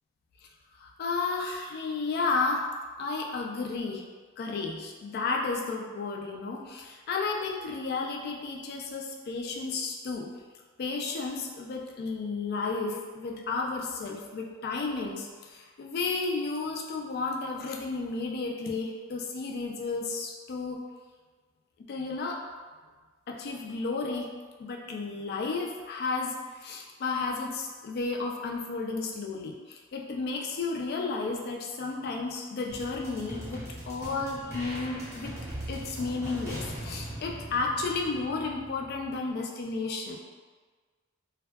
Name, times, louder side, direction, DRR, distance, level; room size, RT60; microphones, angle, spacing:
voice 1, 0.8-2.6 3.0-4.1 4.4-10.3 10.8-20.8 21.9-22.4 23.3-24.3 24.6-35.3 35.7-40.2, left 3 dB, 45° left, 1 dB, 0.3 m, -32 dB
sound 1, 32.7-39.2, right 1 dB, 15° right, 0.6 m, -40 dB
2.5 x 2.2 x 2.2 m, 1.4 s
head